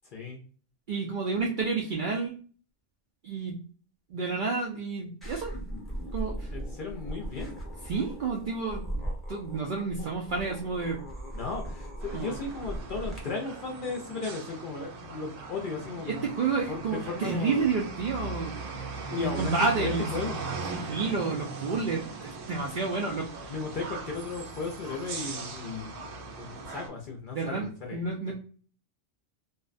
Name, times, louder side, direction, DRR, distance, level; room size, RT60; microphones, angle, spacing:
voice 1, 0.0-0.4 6.5-7.6 11.3-16.3 16.7-17.7 19.1-20.4 23.5-26.0 26.3-28.3, left 4 dB, 55° left, 0 dB, 0.6 m, -36 dB
voice 2, 0.9-2.3 3.2-3.6 4.1-5.5 6.1-6.5 7.8-11.0 12.1-12.4 16.1-18.7 19.1-20.1 20.7-23.5 27.3-28.3, right 4 dB, 65° right, -1 dB, 0.5 m, -30 dB
sound 1, 5.2-13.2, right 1 dB, ahead, 0.6 m, -38 dB
sound 2, 12.0-26.9, right 3 dB, 80° right, 1.0 m, -39 dB
2.5 x 2.1 x 2.4 m, 0.41 s
omnidirectional pair, 1.3 m